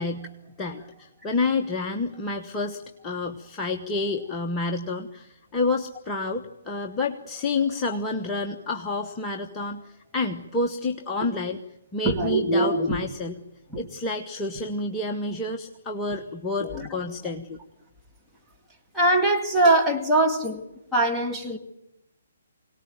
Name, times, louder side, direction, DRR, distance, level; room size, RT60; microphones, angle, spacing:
voice 1, 0.0-11.6 11.9-13.3 13.8-17.6, left 3 dB, 15° left, 1.1 m, -29 dB
voice 2, 12.0-13.0 16.6-16.9 18.9-20.6 20.9-21.6, right 2 dB, 5° right, 2.3 m, -22 dB
23.0 x 18.5 x 9.1 m
figure-of-eight pair, 130°, 0 cm